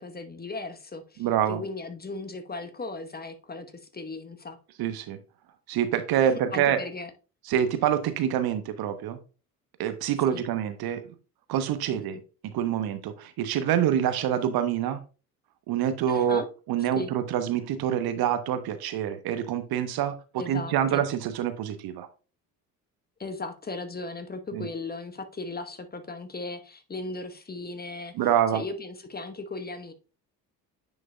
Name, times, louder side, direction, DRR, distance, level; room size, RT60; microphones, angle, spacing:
voice 1, 0.0-4.6 6.3-7.1 10.3-10.4 11.9-12.2 16.1-16.5 16.9-17.1 20.4-21.0 23.2-28.1 28.5-29.9, left 3 dB, 20° left, 1.1 m, -37 dB
voice 2, 1.2-1.6 4.8-5.2 5.7-6.8 7.5-9.2 9.8-11.0 11.5-12.2 12.5-15.0 15.7-16.4 16.7-22.1 24.5-24.7 28.2-28.6, right 10 dB, 50° right, 1.0 m, -26 dB
9.8 x 5.1 x 2.2 m
figure-of-eight pair, 55°, 46 cm